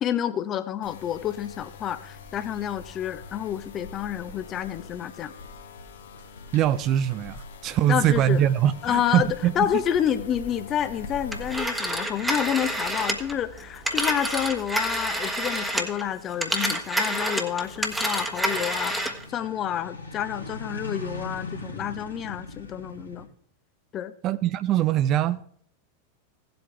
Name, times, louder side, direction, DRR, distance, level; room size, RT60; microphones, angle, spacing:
voice 1, 0.0-5.3 7.9-8.4 8.8-9.3 9.6-23.3 23.9-24.1, left 10 dB, 30° left, 0.8 m, -29 dB
sound 1, 0.8-11.7, left 3 dB, 60° left, 1.4 m, -43 dB
voice 2, 6.5-9.8 24.2-25.4, right 11 dB, 35° right, 0.4 m, -23 dB
sound 2, 9.8-23.3, left 2 dB, 85° left, 2.2 m, -43 dB
Telephone, 11.3-16.0 16.3-19.2, right 1 dB, 5° right, 1.3 m, -28 dB
17.0 x 7.9 x 3.3 m
figure-of-eight pair, 90°, 0 cm